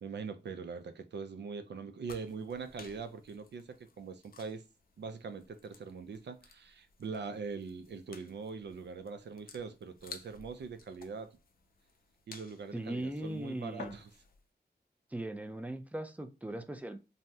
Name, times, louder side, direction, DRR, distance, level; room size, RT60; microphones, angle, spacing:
voice 1, 0.0-4.6 5.0-11.4 12.3-14.1, right 5 dB, 80° right, 0.4 m, -42 dB
sound 1, 2.0-14.4, left 4 dB, 60° left, 0.4 m, -55 dB
voice 2, 12.7-13.9 15.1-17.0, right 1 dB, 10° right, 0.3 m, -39 dB
2.7 x 2.0 x 3.3 m
wide cardioid pair, 105°, 18 cm